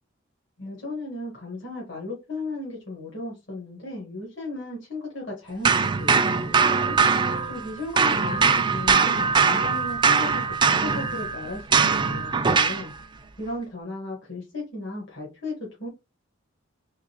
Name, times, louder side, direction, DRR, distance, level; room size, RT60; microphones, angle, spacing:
voice 1, 0.6-7.0 7.5-10.5 10.7-12.9 13.4-15.9, left 2 dB, 65° left, -3 dB, 1.4 m, -35 dB
sound 1, 5.6-7.7 8.0-12.9, right 5 dB, 25° right, 0.3 m, -21 dB
3.7 x 3.2 x 2.9 m, 0.26 s
head